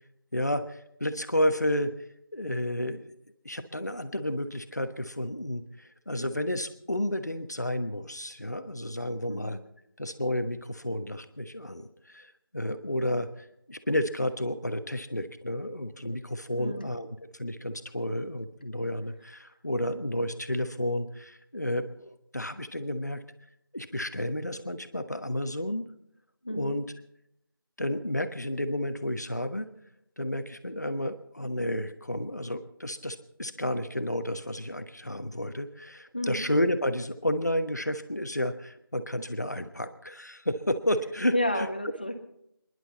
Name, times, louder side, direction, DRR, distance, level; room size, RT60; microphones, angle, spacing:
voice 1, 0.3-1.9 2.3-3.2 3.4-9.6 10.0-17.1 17.3-23.2 23.7-25.9 26.5-26.8 27.8-29.7 30.2-41.7, left 1 dB, 45° left, 10 dB, 1.2 m, -31 dB
voice 2, 9.3-9.6 16.5-16.9 19.4-19.5 26.4-26.8 36.1-36.5 41.3-42.1, left 1 dB, 25° left, 6 dB, 1.2 m, -31 dB
29.5 x 11.0 x 4.2 m, 0.79 s
figure-of-eight pair, 175°, 12 cm